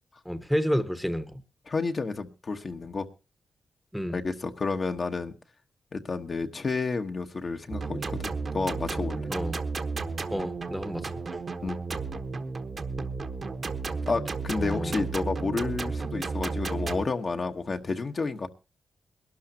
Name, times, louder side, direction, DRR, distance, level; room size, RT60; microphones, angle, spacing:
voice 1, 0.2-1.4 3.9-4.2 9.3-9.6 10.3-11.4 14.6-15.0, equal, ahead, 12 dB, 1.0 m, -30 dB
voice 2, 1.7-3.1 4.1-5.3 5.9-9.3 11.6-11.8 14.1-18.5, left 4 dB, 45° left, 5 dB, 1.2 m, -30 dB
sound 1, 7.7-17.0, right 4 dB, 45° right, 1.2 m, -33 dB
22.5 x 12.5 x 2.8 m, 0.30 s
cardioid pair, 95°, 0 cm